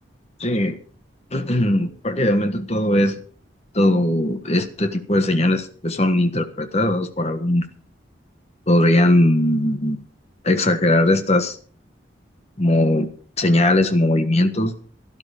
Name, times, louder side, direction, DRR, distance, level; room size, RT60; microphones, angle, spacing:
voice 1, 0.4-0.8 1.3-3.2 3.7-7.7 8.7-10.0 10.4-11.6 12.6-13.1 13.4-14.7, left 1 dB, 35° left, 7 dB, 1.4 m, -19 dB
12.5 x 12.5 x 5.0 m, 0.43 s
head